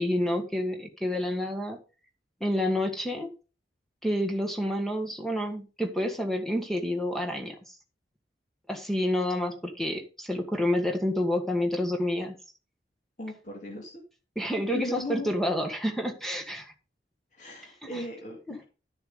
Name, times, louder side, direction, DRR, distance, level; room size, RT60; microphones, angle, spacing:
voice 1, 0.0-1.8 2.4-3.3 4.0-7.6 8.7-12.3 14.3-16.7 17.8-18.0, left 1 dB, ahead, 1.6 m, -29 dB
voice 2, 13.2-13.9 14.7-15.3 17.3-18.6, left 1 dB, 45° left, 2.5 m, -37 dB
12.0 x 7.0 x 3.9 m
head